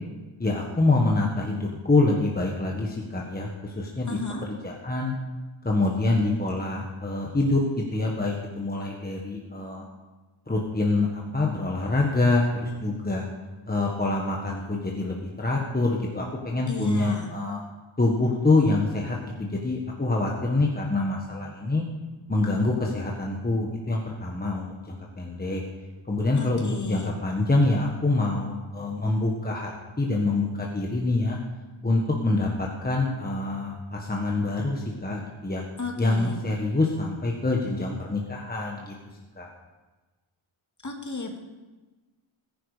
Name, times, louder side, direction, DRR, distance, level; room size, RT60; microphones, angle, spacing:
voice 1, 0.4-4.2 4.5-5.1 5.6-9.8 10.5-13.3 13.7-17.6 18.0-21.8 22.3-25.6 26.1-29.7 30.0-31.4 31.8-35.6 36.0-38.9 39.4-39.5, left 2 dB, 20° left, -1 dB, 1.4 m, -26 dB
voice 2, 4.1-4.5 16.7-17.3 26.4-27.1 35.8-36.4 40.8-41.4, left 3 dB, 35° left, 2 dB, 2.2 m, -33 dB
20.0 x 10.5 x 5.0 m, 1.2 s
wide cardioid pair, 160°, 50 cm